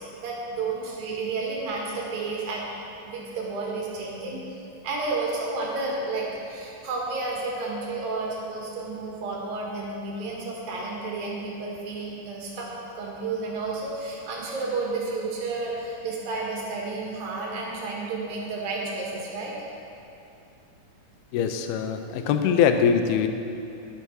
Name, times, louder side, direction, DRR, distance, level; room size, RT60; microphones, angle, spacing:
voice 1, 0.0-2.6 3.0-4.4 4.8-12.7 13.0-19.5, right 3 dB, 70° right, -3 dB, 3.5 m, -31 dB
voice 2, 21.3-23.3, left 7 dB, 90° left, 7 dB, 2.6 m, -22 dB
13.5 x 6.7 x 6.3 m, 2.7 s
omnidirectional pair, 4.3 m